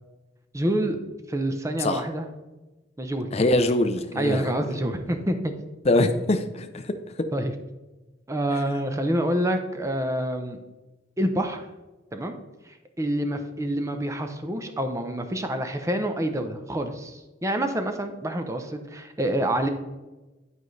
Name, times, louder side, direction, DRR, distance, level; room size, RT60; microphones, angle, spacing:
voice 1, 0.5-1.0 1.3-2.3 3.0-3.5 4.1-5.5 7.3-7.5 8.3-10.6 11.2-11.7 12.1-12.3 13.0-19.7, right 1 dB, 15° right, 6 dB, 0.6 m, -27 dB
voice 2, 3.3-4.5 5.9-6.9 8.5-8.6, left 2 dB, 30° left, 9 dB, 0.5 m, -23 dB
11.5 x 5.3 x 3.2 m, 1.1 s
head